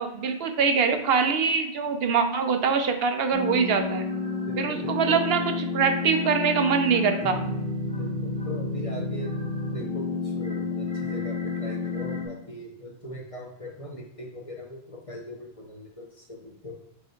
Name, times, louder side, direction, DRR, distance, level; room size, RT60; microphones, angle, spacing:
voice 1, 0.0-4.0 4.6-7.4, right 6 dB, 70° right, 6 dB, 0.8 m, -24 dB
sound 1, 3.3-12.3, left 4 dB, 5° left, 0.7 m, -30 dB
voice 2, 4.5-5.2 8.0-16.7, equal, 35° left, -1 dB, 0.7 m, -40 dB
5.4 x 2.2 x 4.4 m, 0.78 s
omnidirectional pair, 1.1 m